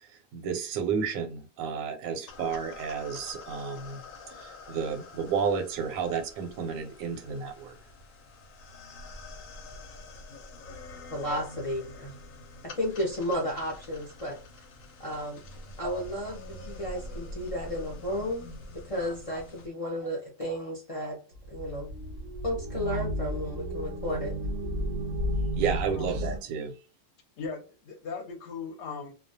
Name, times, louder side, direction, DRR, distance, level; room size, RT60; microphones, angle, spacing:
voice 1, 0.0-4.0 4.4-7.7 25.6-26.7, right 6 dB, 90° right, 7 dB, 1.0 m, -31 dB
sound 1, 2.3-19.7, left 2 dB, 85° left, 1.0 m, -46 dB
voice 2, 11.1-12.1 12.8-14.4 15.0-15.4 15.8-18.5 18.9-21.2 21.5-21.9 22.4-24.3, equal, 45° left, -3 dB, 0.4 m, -33 dB
sound 2, 21.3-26.4, equal, 65° right, 0.6 m, -33 dB
voice 3, 27.4-29.1, left 5 dB, 65° left, 3 dB, 0.9 m, -38 dB
2.3 x 2.2 x 2.6 m, 0.34 s
omnidirectional pair, 1.4 m